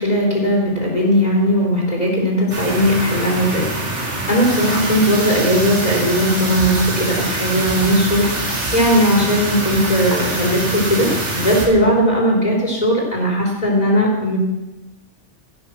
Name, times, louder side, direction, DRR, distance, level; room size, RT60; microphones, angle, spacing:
voice 1, 0.0-3.8 4.3-14.4, equal, 35° left, -3 dB, 3.8 m, -18 dB
sound 1, 2.5-11.7, right 2 dB, 70° right, 2.6 m, -24 dB
16.0 x 6.5 x 6.1 m, 1.0 s
omnidirectional pair, 1.2 m